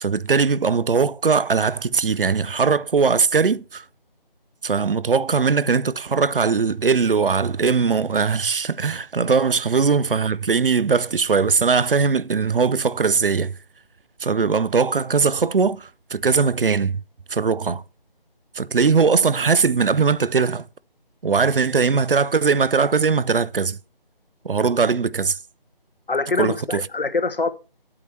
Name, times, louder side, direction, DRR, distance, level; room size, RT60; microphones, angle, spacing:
voice 1, 0.0-3.8 4.6-13.5 14.2-17.0 17.3-17.8 18.5-20.7 21.2-23.8 24.4-25.4 26.4-26.9, right 5 dB, 70° right, 0.6 m, -20 dB
voice 2, 26.1-27.5, left 3 dB, 65° left, 1.0 m, -24 dB
9.1 x 8.7 x 4.2 m
figure-of-eight pair, 165°, 29 cm